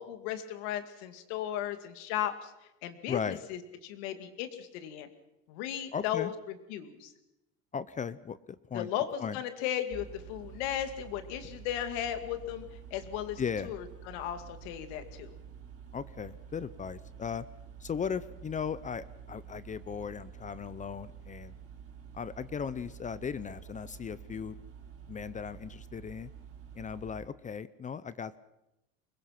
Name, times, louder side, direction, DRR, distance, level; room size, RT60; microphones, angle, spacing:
voice 1, 0.0-2.5 2.8-5.1 5.5-6.3 6.7-7.1 8.7-12.7 12.9-15.3, left 11 dB, 80° left, 8 dB, 2.4 m, -36 dB
voice 2, 3.1-3.4 5.9-6.3 7.7-8.9 9.2-9.4 13.4-13.7 15.9-17.4 17.8-21.5 22.1-24.6 25.1-26.3 26.7-28.4, left 7 dB, 25° left, 16 dB, 0.7 m, -37 dB
sound 1, 9.9-27.1, right 8 dB, 45° right, 4.7 m, -49 dB
24.5 x 21.0 x 5.9 m, 0.91 s
supercardioid pair, 120°, 33 cm